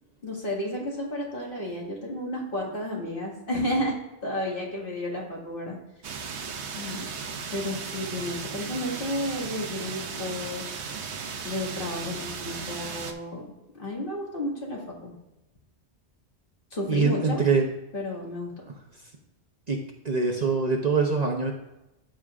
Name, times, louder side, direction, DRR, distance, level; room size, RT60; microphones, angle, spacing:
voice 1, 0.2-5.8 6.7-7.1 7.5-10.6 11.4-13.5 13.7-15.1 16.7-17.4 17.9-18.5, left 1 dB, 50° left, -3 dB, 2.2 m, -32 dB
sound 1, 6.0-13.1, right 5 dB, 75° right, 1.0 m, -36 dB
voice 2, 16.9-17.6 19.7-19.8 20.0-21.5, right 4 dB, 40° right, 1 dB, 0.8 m, -23 dB
13.5 x 5.1 x 2.5 m, 0.92 s
omnidirectional pair, 1.1 m